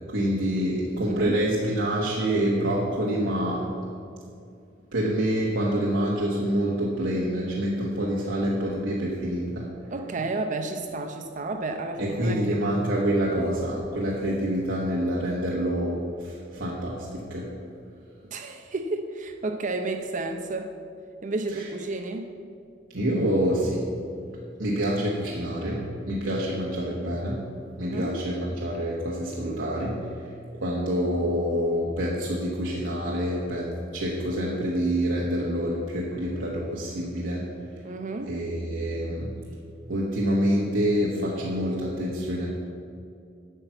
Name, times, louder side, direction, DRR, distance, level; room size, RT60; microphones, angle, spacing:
voice 1, 0.1-3.7 4.9-9.7 12.0-17.5 22.9-23.9 24.6-27.4 27.8-30.0 30.6-37.4 38.3-39.3 39.9-42.5, equal, 75° right, -4 dB, 1.3 m, -27 dB
voice 2, 1.1-1.4 9.9-12.6 18.3-20.7 21.2-22.3 27.8-28.2 37.8-38.3, right 2 dB, 40° right, 6 dB, 0.6 m, -31 dB
9.0 x 5.8 x 7.9 m, 2.4 s
head